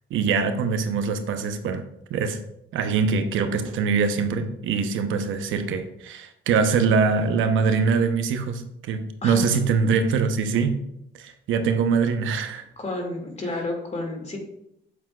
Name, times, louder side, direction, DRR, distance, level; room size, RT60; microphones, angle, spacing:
voice 1, 0.1-1.8 2.1-2.4 2.7-8.6 8.9-10.8 11.2-12.6, right 5 dB, 80° right, 8 dB, 0.8 m, -23 dB
voice 2, 12.8-14.4, left 2 dB, 35° left, 2 dB, 2.2 m, -30 dB
8.2 x 7.3 x 2.4 m, 0.77 s
cardioid pair, 90°, 20 cm